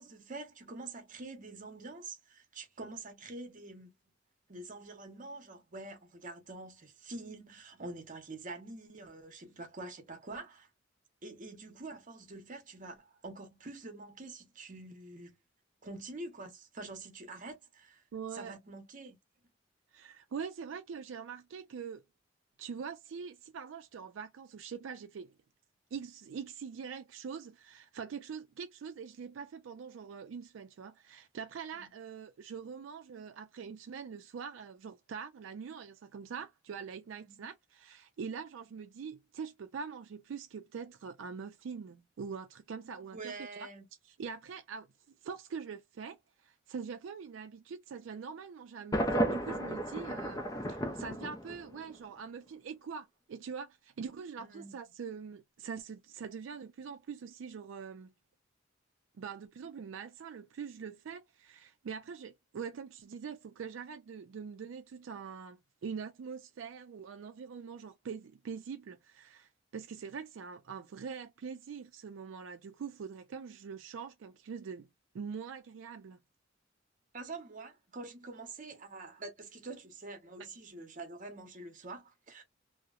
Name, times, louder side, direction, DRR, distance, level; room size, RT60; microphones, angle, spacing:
voice 1, 0.0-3.9 4.5-10.7 11.2-15.4 15.8-18.0 18.3-19.2 31.7-31.9 37.2-37.5 43.1-43.9 54.4-54.7 77.1-82.4, right 2 dB, 45° right, 0.8 m, -46 dB
voice 2, 18.1-18.6 19.9-22.0 22.6-25.3 25.9-43.7 44.0-44.9 45.2-50.4 50.7-58.1 59.2-74.9 75.1-76.2, right 6 dB, 80° right, 0.4 m, -43 dB
Thunder, 48.9-51.9, right 1 dB, 20° left, 0.5 m, -33 dB
2.8 x 2.0 x 2.3 m
head